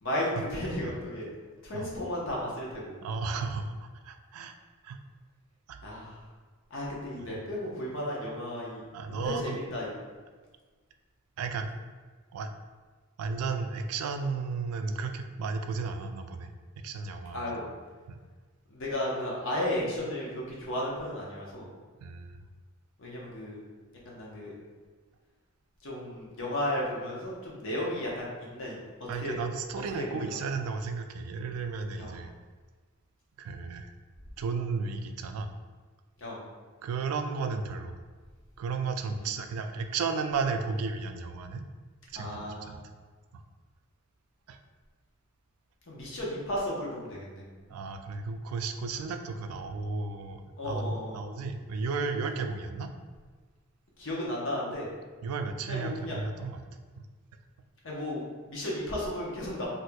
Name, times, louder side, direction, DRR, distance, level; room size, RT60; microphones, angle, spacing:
voice 1, 0.0-1.3 1.6-3.0 5.8-6.2 6.7-8.8 9.1-9.9 17.3-17.6 18.7-21.7 23.0-23.6 24.0-24.5 25.8-28.8 29.2-29.4 29.9-30.4 32.0-32.1 36.2-36.4 42.2-42.8 45.9-47.4 50.6-51.2 54.0-54.9 55.7-56.2 57.8-59.7, left 1 dB, 60° left, -4 dB, 0.8 m, -34 dB
voice 2, 3.0-4.6 4.8-5.0 5.7-5.8 7.2-7.3 8.9-9.6 11.4-11.7 12.3-12.5 13.2-17.7 18.1-18.2 22.0-22.4 29.1-32.3 33.4-33.9 34.4-35.5 36.8-38.0 38.6-41.6 42.1-42.8 43.3-43.4 44.5-44.6 47.7-52.9 55.2-56.6 57.0-57.1, right 4 dB, 85° right, 7 dB, 0.3 m, -34 dB
4.2 x 2.6 x 2.2 m, 1.4 s
head